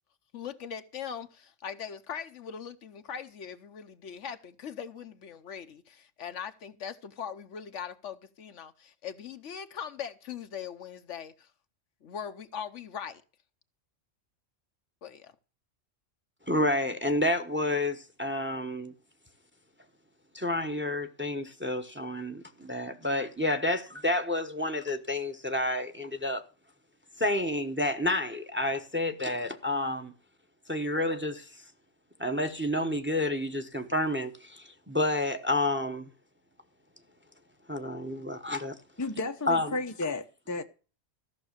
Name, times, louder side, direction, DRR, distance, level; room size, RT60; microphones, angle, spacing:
voice 1, 0.3-11.5 12.0-13.2 15.0-15.3, left 7 dB, 75° left, 1.2 m, -40 dB
voice 2, 16.5-18.9 20.3-26.4 27.2-30.1 30.7-31.5 32.2-36.1 37.7-38.8 39.5-39.7, left 1 dB, 10° right, 0.9 m, -29 dB
voice 3, 39.0-40.6, left 2 dB, 20° left, 0.6 m, -33 dB
14.0 x 6.2 x 6.6 m
omnidirectional pair, 1.3 m